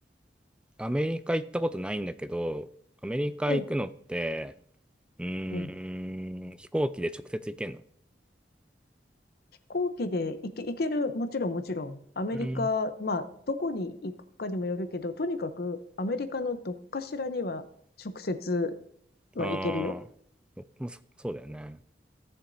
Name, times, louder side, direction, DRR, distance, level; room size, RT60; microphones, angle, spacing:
voice 1, 0.8-2.7 3.0-4.5 5.2-7.8 12.3-12.7 19.4-20.0 20.8-21.8, equal, 5° right, 12 dB, 0.3 m, -32 dB
voice 2, 9.7-17.6 18.0-18.8 19.3-19.9, left 2 dB, 60° left, 11 dB, 0.7 m, -31 dB
16.5 x 7.1 x 2.6 m, 0.66 s
head